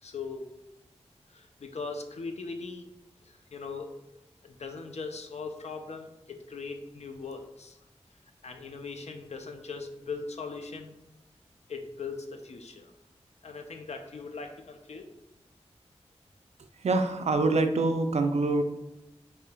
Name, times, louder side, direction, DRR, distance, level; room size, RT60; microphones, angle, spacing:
voice 1, 0.0-0.5 1.3-2.9 3.2-3.9 4.4-7.8 8.4-10.9 11.7-12.9 13.4-15.1, left 4 dB, 70° left, 4 dB, 0.5 m, -40 dB
voice 2, 16.7-18.6, right 3 dB, 75° right, 7 dB, 0.4 m, -25 dB
5.0 x 2.8 x 2.2 m, 0.96 s
wide cardioid pair, 50°, 12 cm